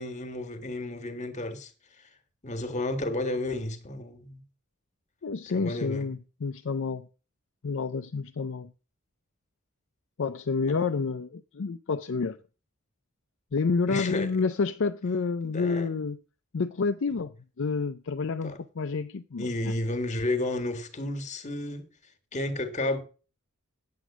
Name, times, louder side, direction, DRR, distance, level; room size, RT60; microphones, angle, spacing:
voice 1, 0.0-1.7 2.4-4.4 5.5-6.1 10.6-10.7 13.9-14.3 15.4-15.9 18.4-18.6 19.4-21.9 22.3-23.0, left 2 dB, 35° left, 1.7 m, -32 dB
voice 2, 5.2-7.1 7.6-8.7 10.2-12.4 13.5-16.2 16.5-19.7, left 4 dB, 60° left, 0.5 m, -29 dB
9.3 x 8.0 x 6.0 m
head